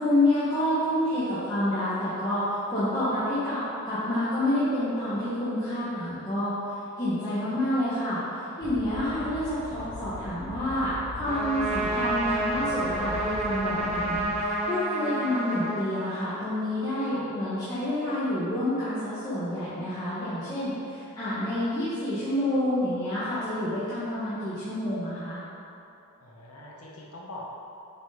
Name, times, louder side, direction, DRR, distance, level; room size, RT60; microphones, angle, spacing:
voice 1, 0.0-6.5 7.0-25.4, left 1 dB, 15° left, -14 dB, 1.6 m, -28 dB
sound 1, 8.6-14.5, left 2 dB, 60° left, 0.6 m, -40 dB
Trumpet, 11.3-16.5, right 2 dB, 30° right, 1.0 m, -29 dB
voice 2, 17.0-17.5 26.2-27.4, left 2 dB, 85° left, -4 dB, 1.5 m, -44 dB
7.4 x 5.2 x 5.1 m, 2.6 s
head